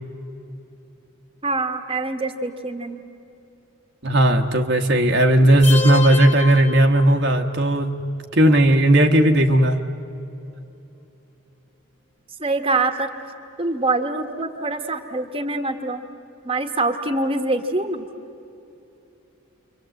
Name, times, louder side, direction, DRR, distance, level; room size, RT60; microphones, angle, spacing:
voice 1, 1.4-3.0 12.4-13.1 13.6-16.0 16.4-18.1, right 2 dB, 25° right, 6 dB, 1.4 m, -24 dB
voice 2, 4.0-8.0 8.3-9.8, right 1 dB, 55° right, 3 dB, 1.3 m, -16 dB
sound 1, 5.6-7.6, left 5 dB, 25° left, 2.5 m, -29 dB
29.5 x 24.5 x 7.9 m, 2.8 s
head